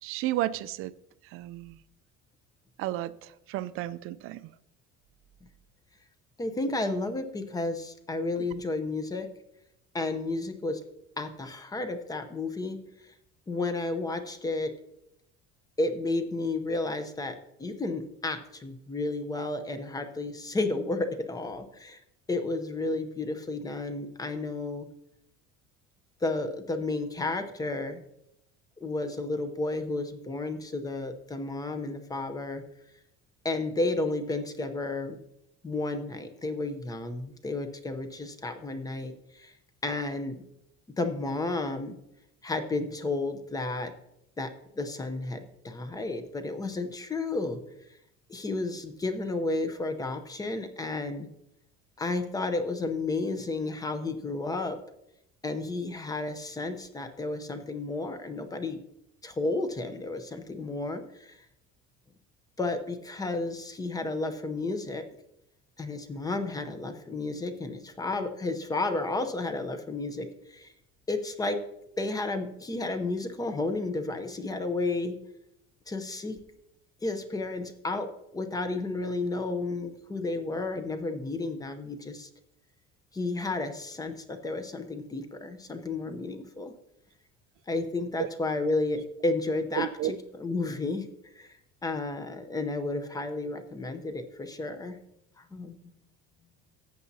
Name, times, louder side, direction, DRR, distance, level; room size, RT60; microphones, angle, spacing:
voice 1, 0.0-0.9 1.2-1.8 2.8-4.5 8.4-8.5 88.2-88.3 89.7-90.1, right 14 dB, 50° right, 0.4 m, -32 dB
voice 2, 6.4-9.3 9.9-10.8 11.2-12.8 13.5-14.7 15.8-22.0 22.3-24.9 26.2-28.0 28.8-32.6 33.4-35.2 35.6-39.5 39.8-40.4 41.0-42.0 42.4-43.9 44.4-47.6 48.3-51.3 52.0-54.8 55.4-58.8 59.2-61.4 62.6-65.0 65.8-70.7 71.1-71.6 72.0-75.2 75.9-76.4 77.0-82.3 83.1-86.7 87.7-89.9 90.4-91.1 91.4-91.5 91.8-95.0 95.5-95.7, left 2 dB, 10° left, 0.6 m, -32 dB
14.0 x 8.4 x 2.7 m
cardioid pair, 165°, 30 cm